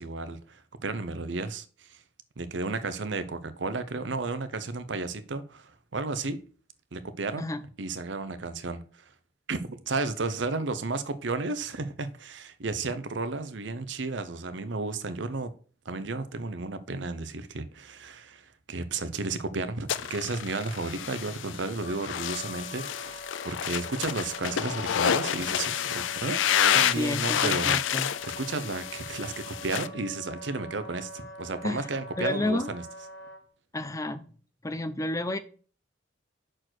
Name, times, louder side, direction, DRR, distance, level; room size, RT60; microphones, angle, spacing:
voice 1, 0.0-2.0 2.4-6.4 6.9-7.5 7.8-8.8 9.5-15.5 15.9-26.4 26.7-27.8 28.2-32.8, right 3 dB, 70° right, 0.7 m, -33 dB
sound 1, 19.9-29.9, left 9 dB, 80° left, 0.4 m, -29 dB
Wind instrument woodwind instrument, 21.8-33.4, equal, 65° left, 1.4 m, -44 dB
voice 2, 26.9-28.1 31.6-31.9 32.2-32.7 33.7-34.3 34.6-35.4, left 1 dB, 15° left, 0.5 m, -30 dB
6.3 x 4.5 x 6.1 m
head